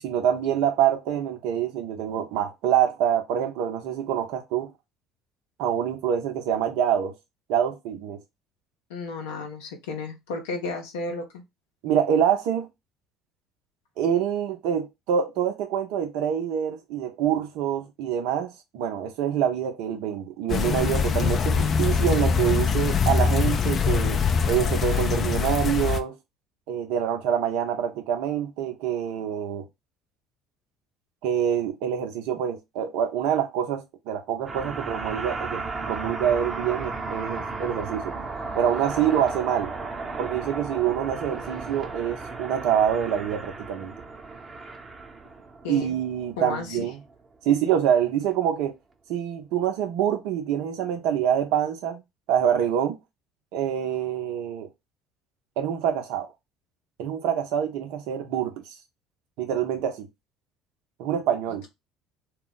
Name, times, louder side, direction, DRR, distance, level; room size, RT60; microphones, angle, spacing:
voice 1, 0.0-4.7 5.6-7.1 7.5-8.2 11.8-12.7 14.0-24.2 24.5-26.2 26.7-29.6 31.2-38.1 38.6-39.7 40.2-43.9 45.7-47.0 47.4-48.7 49.1-52.0 52.3-53.0 53.5-54.7 55.6-56.3 57.0-58.7 59.4-60.1 61.0-61.7, right 9 dB, 75° right, 0.6 m, -26 dB
voice 2, 8.9-11.2 45.6-45.9 46.4-46.9 47.5-47.6, left 3 dB, 85° left, 0.7 m, -33 dB
sound 1, 20.5-26.0, left 6 dB, 45° left, 0.4 m, -23 dB
sound 2, 34.5-47.1, right 3 dB, 30° right, 0.8 m, -34 dB
2.3 x 2.0 x 3.8 m
hypercardioid pair, 65°, 0 cm